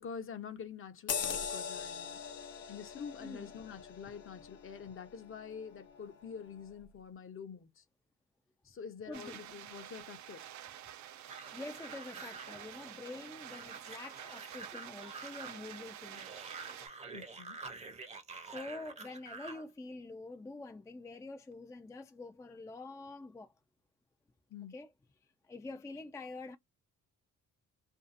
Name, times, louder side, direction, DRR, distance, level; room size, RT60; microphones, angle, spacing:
voice 1, 0.0-2.2 2.7-7.8 8.6-10.4 17.1-17.6 24.5-24.7, left 7 dB, 45° left, 0.7 m, -46 dB
sound 1, 1.1-6.0 6.5-6.7, left 7 dB, 80° left, 0.8 m, -41 dB
voice 2, 3.2-3.5 9.1-9.4 11.5-16.3 18.4-23.5 24.7-24.9 25.5-26.6, left 2 dB, 10° left, 0.3 m, -46 dB
sound 2, 9.1-16.9, right 11 dB, 70° right, 0.5 m, -49 dB
sound 3, 11.3-19.7, right 4 dB, 20° right, 0.7 m, -48 dB
2.6 x 2.4 x 2.4 m
cardioid pair, 90°, 30 cm